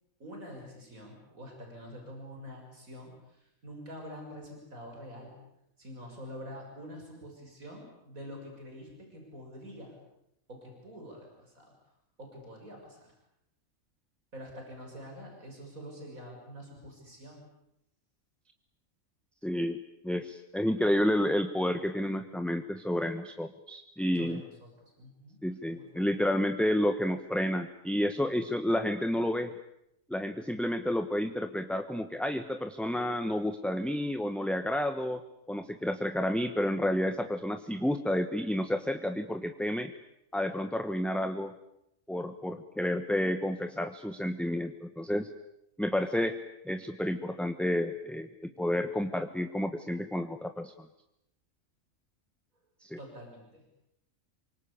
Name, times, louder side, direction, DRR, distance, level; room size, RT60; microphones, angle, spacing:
voice 1, 0.2-5.3 5.8-9.9 10.5-11.7 12.2-13.1 14.3-17.5 24.2-25.4 25.7-26.1 35.5-35.6 53.0-53.6, equal, 90° right, 1 dB, 7.0 m, -46 dB
voice 2, 19.4-24.4 25.4-29.5 30.1-35.2 35.5-39.9 40.3-41.5 42.1-45.3 45.8-46.4 46.6-50.7 52.8-53.0, left 1 dB, ahead, 7 dB, 1.0 m, -30 dB
28.0 x 24.5 x 8.6 m, 0.80 s
omnidirectional pair, 1.4 m